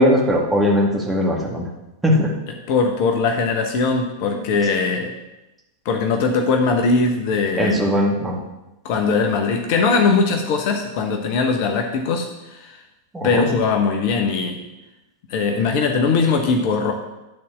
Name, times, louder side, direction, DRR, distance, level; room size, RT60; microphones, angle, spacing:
voice 1, 0.0-1.7 2.0-2.3 4.3-4.4 7.6-8.4 13.1-13.5, equal, 10° right, -2 dB, 2.0 m, -19 dB
voice 2, 2.7-5.1 5.8-7.9 8.8-12.8 13.2-14.6 15.3-16.9, left 4 dB, 45° left, 4 dB, 1.0 m, -20 dB
11.0 x 4.2 x 6.2 m, 0.97 s
figure-of-eight pair, 90°, 0 cm